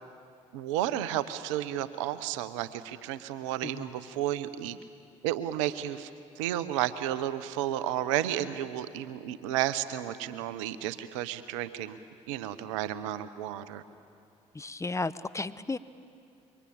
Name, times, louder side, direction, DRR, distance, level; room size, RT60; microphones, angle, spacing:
voice 1, 0.5-4.8 5.2-6.1 6.4-12.0 12.3-13.8, right 12 dB, 80° right, 14 dB, 0.9 m, -32 dB
voice 2, 14.5-15.8, left 3 dB, 20° left, 14 dB, 1.0 m, -33 dB
26.5 x 23.5 x 8.7 m, 2.5 s
hypercardioid pair, 50°, 16 cm